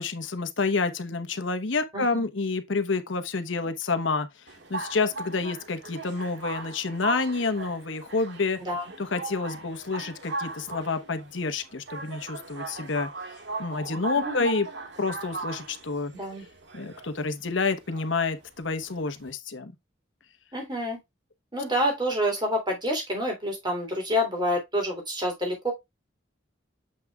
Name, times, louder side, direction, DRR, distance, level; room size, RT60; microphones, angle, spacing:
voice 1, 0.0-4.3 4.7-8.6 9.0-13.1 13.6-14.7 15.0-16.1 16.7-19.7, left 4 dB, 75° left, 1.1 m, -28 dB
voice 2, 1.9-2.2 8.6-8.8 14.1-14.5 16.1-16.4 20.5-21.0 21.5-25.7, equal, 20° right, 3.2 m, -28 dB
sound 1, 4.5-19.3, right 3 dB, 60° right, 1.7 m, -38 dB
7.6 x 5.9 x 2.4 m
head